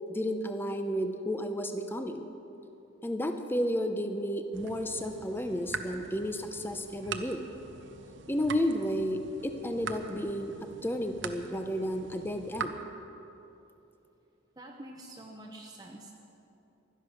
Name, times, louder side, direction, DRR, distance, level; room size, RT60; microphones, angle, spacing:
voice 1, 0.1-2.2 3.0-7.4 8.3-12.7, equal, 10° left, 6 dB, 0.7 m, -32 dB
sound 1, 4.5-12.7, right 5 dB, 55° right, 0.8 m, -43 dB
voice 2, 14.6-16.1, right 1 dB, 20° right, 0 dB, 0.9 m, -46 dB
16.5 x 12.5 x 6.4 m, 3.0 s
head